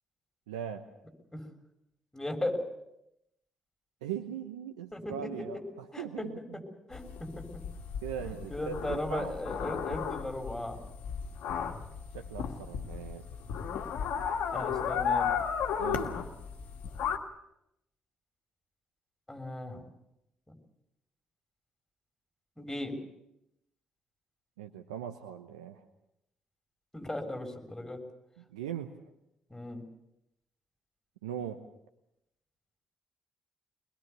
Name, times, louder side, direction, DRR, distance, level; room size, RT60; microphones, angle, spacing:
voice 1, 0.5-0.8 4.0-6.6 8.0-9.3 12.1-13.2 15.8-16.2 24.6-25.8 28.4-28.9 31.2-31.6, right 9 dB, 85° right, 6 dB, 1.0 m, -40 dB
voice 2, 2.1-2.6 4.9-5.1 5.9-6.0 6.9-7.3 8.2-10.8 14.5-15.3 19.3-19.8 22.6-22.9 26.9-28.0 29.5-29.8, left 1 dB, 10° left, 3 dB, 6.6 m, -36 dB
sound 1, 6.9-17.2, left 7 dB, 70° left, 1.9 m, -34 dB
23.5 x 21.0 x 7.0 m, 0.84 s
hypercardioid pair, 45°, 3 cm